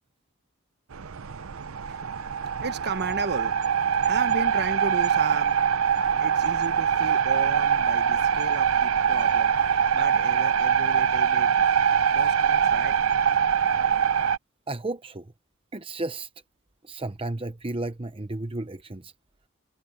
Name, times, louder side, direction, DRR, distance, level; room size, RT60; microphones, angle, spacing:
sound 1, 0.9-14.4, right 7 dB, 70° right, 0.7 m, -23 dB
voice 1, 1.9-3.6 4.0-5.7 6.2-11.5 12.1-13.0, right 4 dB, 50° right, 1.2 m, -35 dB
voice 2, 14.7-15.3 15.7-16.3 16.8-19.1, right 2 dB, 25° right, 0.9 m, -33 dB
head